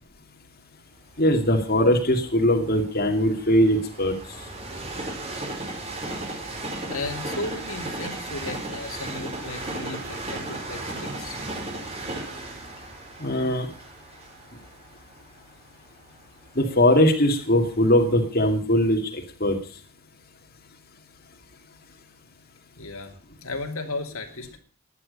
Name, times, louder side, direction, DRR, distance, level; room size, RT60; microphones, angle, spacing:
voice 1, 1.2-4.1 13.2-13.7 16.6-19.6, left 1 dB, 40° left, 2 dB, 2.4 m, -21 dB
Train, 1.2-17.1 17.7-17.8, right 2 dB, 25° right, 4.0 m, -36 dB
voice 2, 6.9-11.4 22.8-24.6, left 2 dB, 70° left, 3 dB, 2.8 m, -35 dB
15.5 x 11.0 x 5.4 m, 0.40 s
head